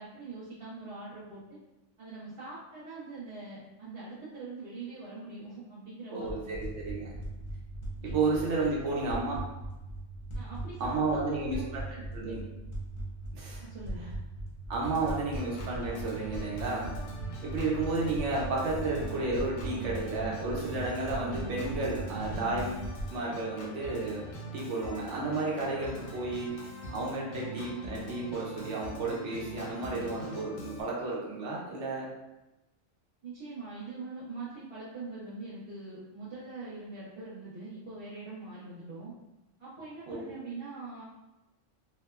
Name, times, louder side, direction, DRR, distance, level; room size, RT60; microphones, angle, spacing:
voice 1, 0.0-1.6 2.0-6.5 8.0-8.1 8.4-8.7 10.3-12.4 13.6-14.1 33.2-39.1 39.6-41.0, right 3 dB, 35° right, -11 dB, 0.5 m, -43 dB
voice 2, 6.1-7.1 8.0-9.4 10.8-12.4 13.3-13.6 14.7-16.9 17.4-24.3 24.5-32.1 40.1-40.3, right 3 dB, 75° right, -4 dB, 1.0 m, -32 dB
sound 1, 6.3-23.1, right 1 dB, 45° left, 0.6 m, -40 dB
Organ, 14.8-30.8, right 1 dB, 90° left, 1.0 m, -42 dB
2.9 x 2.0 x 2.3 m, 0.97 s
omnidirectional pair, 1.3 m